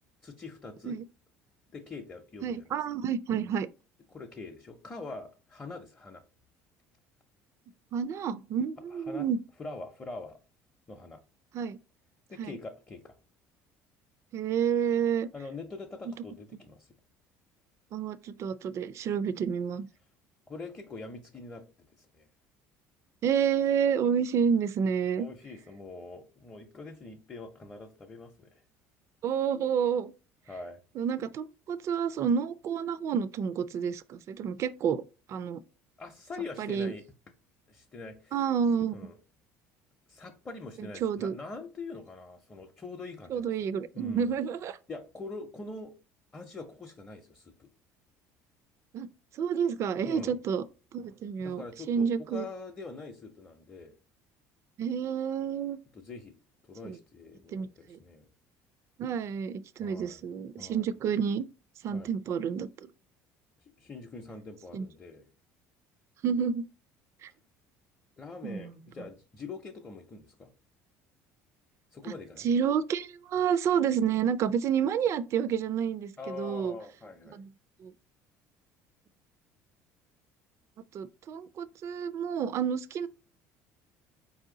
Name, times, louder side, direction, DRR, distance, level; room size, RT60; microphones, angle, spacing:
voice 1, 0.2-1.0 1.7-2.6 4.1-6.2 9.1-9.3 9.6-10.4 10.9-11.2 12.3-13.1 15.3-16.9 20.5-21.7 22.0-22.3 25.2-28.6 30.5-30.8 36.0-37.0 37.7-38.4 38.9-39.2 40.1-43.5 43.9-44.4 44.9-45.9 46.3-47.7 50.1-50.3 51.4-53.9 55.9-56.3 56.6-58.3 59.8-60.2 60.6-60.9 61.9-62.1 63.8-65.3 68.2-70.5 71.9-72.5 76.2-77.4, left 3 dB, 20° left, 0.6 m, -43 dB
voice 2, 2.4-3.7 7.9-9.4 11.5-11.8 12.4-12.5 14.3-15.3 17.9-19.9 23.2-25.3 29.2-30.1 31.0-35.0 35.3-35.6 36.6-36.9 38.3-38.9 40.8-41.4 43.3-44.8 48.9-49.1 49.3-50.6 50.9-52.5 54.8-55.8 56.8-57.0 57.5-58.0 59.0-61.5 61.8-62.9 64.7-64.9 66.2-66.6 67.2-67.3 68.4-68.7 72.4-76.7 77.3-77.5 77.8-77.9 80.9-83.1, right 7 dB, 50° right, 0.4 m, -29 dB
4.4 x 2.7 x 3.8 m
cardioid pair, 110°, 6 cm